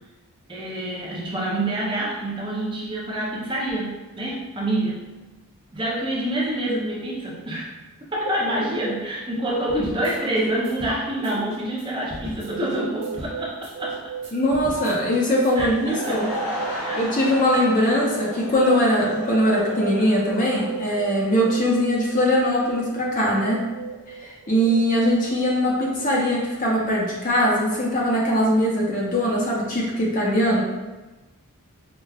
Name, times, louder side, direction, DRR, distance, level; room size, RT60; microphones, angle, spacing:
voice 1, 0.5-5.1 5.7-7.7 8.0-14.0 15.6-16.2 16.7-17.0, right 1 dB, 20° right, -4 dB, 0.5 m, -27 dB
sound 1, 9.7-16.4, equal, 50° right, 1.0 m, -40 dB
sound 2, 12.5-14.6 14.9-18.7 19.0-20.0 20.3-22.1 22.5-26.0, right 6 dB, 90° right, 0.5 m, -35 dB
voice 2, 14.3-16.3 16.7-23.7 24.2-30.6, equal, 35° left, -3 dB, 0.7 m, -21 dB
Laughter / Crowd, 15.7-21.8, equal, 75° left, 1.0 m, -34 dB
4.8 x 2.3 x 2.3 m, 1.1 s
head